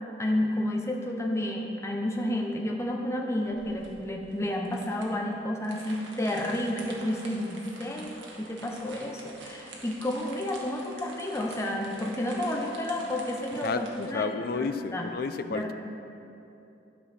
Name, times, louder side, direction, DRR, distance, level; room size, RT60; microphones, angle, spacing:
voice 1, 0.2-15.1 15.5-15.7, left 1 dB, 15° left, 0 dB, 0.7 m, -31 dB
sound 1, 3.5-14.1, right 2 dB, 80° right, 1.3 m, -47 dB
voice 2, 13.6-15.7, left 4 dB, 50° left, 10 dB, 0.4 m, -31 dB
12.0 x 5.5 x 4.2 m, 2.9 s
head